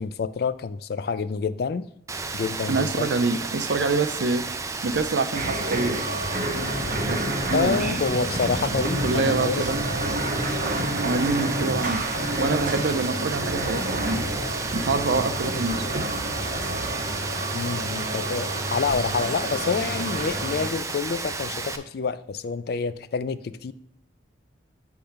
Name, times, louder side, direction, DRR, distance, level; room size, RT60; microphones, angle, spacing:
voice 1, 0.0-1.9 2.3-3.1 7.5-9.6 10.7-11.0 17.5-23.7, left 5 dB, 55° left, 14 dB, 0.3 m, -28 dB
Rain, 2.1-21.8, right 4 dB, 15° right, 0.4 m, -33 dB
voice 2, 2.7-4.5 4.8-6.0 7.0-8.0 8.7-9.8 11.0-12.0 12.4-14.3 14.7-16.1, right 3 dB, 70° right, 10 dB, 0.6 m, -26 dB
sound 1, 5.3-20.7, right 1 dB, 45° right, 1.0 m, -29 dB
6.4 x 3.5 x 5.8 m, 0.76 s
head